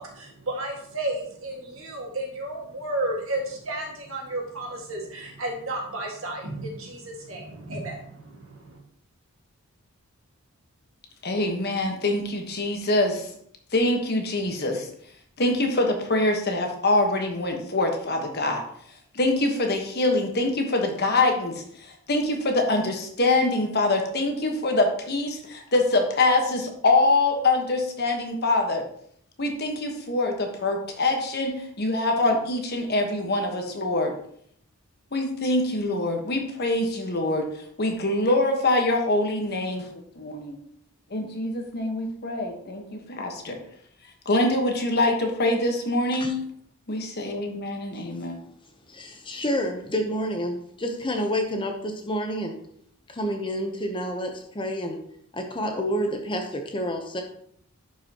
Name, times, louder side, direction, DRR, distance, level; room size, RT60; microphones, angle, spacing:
voice 1, 0.0-8.8, right 1 dB, 65° right, 0 dB, 1.8 m, -33 dB
voice 2, 11.2-13.3 13.7-14.9 15.4-18.6 19.1-28.8 29.4-34.1 35.1-37.5 37.8-39.9 40.2-40.6 41.1-43.6 44.2-46.3 46.9-48.4, left 2 dB, 45° left, 3 dB, 1.2 m, -24 dB
voice 3, 48.9-52.6 53.1-55.0 55.3-57.2, equal, 20° left, 4 dB, 0.8 m, -29 dB
11.0 x 5.3 x 2.9 m, 0.67 s
head